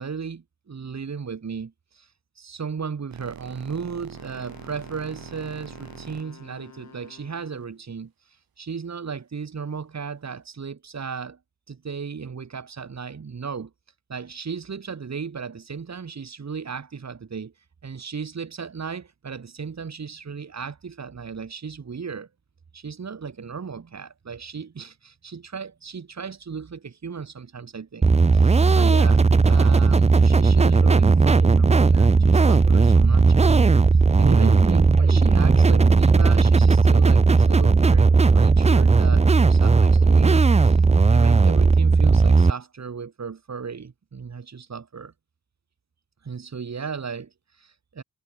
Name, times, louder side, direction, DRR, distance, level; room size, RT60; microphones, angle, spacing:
voice 1, 0.0-2.1 2.4-11.4 11.7-13.7 14.1-17.5 17.8-22.3 22.7-40.8 41.1-45.1 46.2-48.0, right 6 dB, 50° right, 5.9 m, -35 dB
sound 1, 3.1-7.6, right 9 dB, 85° right, 7.2 m, -43 dB
Wind instrument woodwind instrument, 4.1-7.8, left 6 dB, 50° left, 8.0 m, -49 dB
sound 2, 28.0-42.5, right 4 dB, 20° right, 0.6 m, -16 dB
wide cardioid pair, 105°, 35 cm